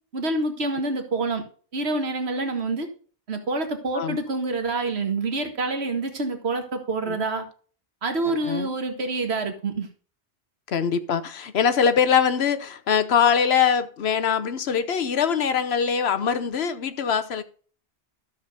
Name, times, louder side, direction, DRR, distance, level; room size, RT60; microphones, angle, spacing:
voice 1, 0.1-1.4 1.7-2.9 3.3-7.4 8.0-9.9, right 3 dB, 75° right, 1.8 m, -27 dB
voice 2, 8.3-8.7 10.7-17.4, left 7 dB, 75° left, 1.0 m, -23 dB
13.0 x 7.2 x 2.6 m
omnidirectional pair, 1.1 m